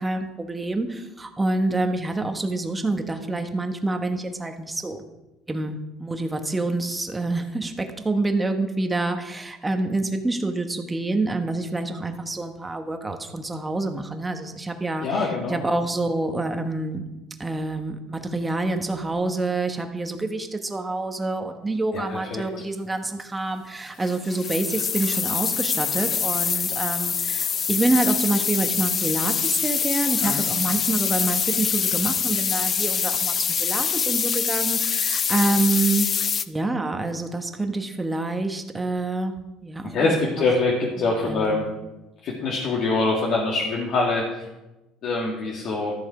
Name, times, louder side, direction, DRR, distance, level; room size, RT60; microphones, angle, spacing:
voice 1, 0.0-5.0 5.5-17.0 17.4-36.1 36.5-39.3 39.6-40.5 41.0-41.7, right 2 dB, 15° right, 5 dB, 1.2 m, -27 dB
voice 2, 15.0-15.6 22.1-22.4 30.2-30.4 39.8-41.6 42.2-44.2 45.0-45.9, left 3 dB, 55° left, -3 dB, 2.1 m, -24 dB
sound 1, 24.0-36.4, left 7 dB, 35° left, 0.5 m, -25 dB
13.0 x 7.1 x 4.9 m, 1.0 s
cardioid pair, 115°, 0 cm